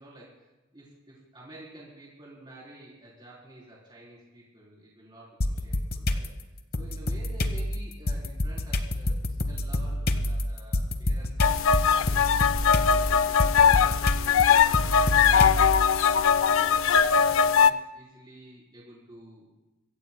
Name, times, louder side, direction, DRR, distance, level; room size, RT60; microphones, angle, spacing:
voice 1, 0.0-6.3 6.8-12.1 12.7-15.4 15.9-19.6, right 1 dB, 20° right, -5 dB, 3.7 m, -50 dB
sound 1, 5.4-6.3 6.7-15.9, left 1 dB, 50° left, 0.9 m, -27 dB
sound 2, 11.4-17.7, left 7 dB, 70° left, 0.4 m, -21 dB
24.0 x 16.5 x 2.2 m, 1.1 s
head